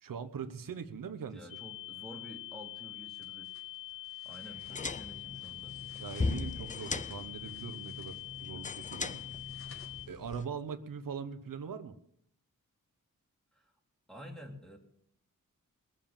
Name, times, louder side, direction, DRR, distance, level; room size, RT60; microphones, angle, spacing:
voice 1, 0.0-1.5 6.0-9.2 10.1-11.9, right 6 dB, 80° right, 9 dB, 1.1 m, -41 dB
voice 2, 1.3-3.5 4.2-5.8 13.5-13.7 14.1-14.8, equal, ahead, 1 dB, 2.9 m, -50 dB
sound 1, 1.5-10.1, left 17 dB, 85° left, 0.6 m, -45 dB
sound 2, 3.2-10.6, left 2 dB, 45° left, 5.1 m, -61 dB
sound 3, 4.5-10.5, left 3 dB, 25° left, 0.6 m, -39 dB
21.5 x 7.4 x 7.4 m, 0.70 s
wide cardioid pair, 135°, 33 cm